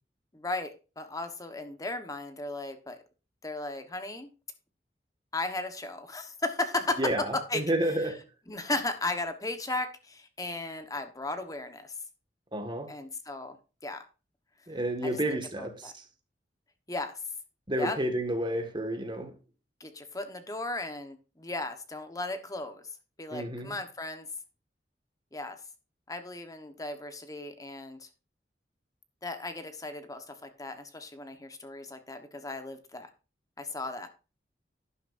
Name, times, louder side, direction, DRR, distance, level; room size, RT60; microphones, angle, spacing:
voice 1, 0.3-3.0 3.4-4.3 5.3-7.6 8.0-8.1 8.5-12.0 12.9-13.6 13.8-14.0 14.7-15.9 16.9-17.1 17.7-18.0 19.8-24.3 25.3-25.6 26.1-28.1 29.2-33.1 33.6-34.1, left 2 dB, 20° left, 1.2 m, -36 dB
voice 2, 7.0-8.2 12.5-12.9 14.7-15.9 17.7-19.3 23.3-23.7, right 1 dB, 25° right, 1.8 m, -30 dB
12.0 x 10.0 x 2.6 m
head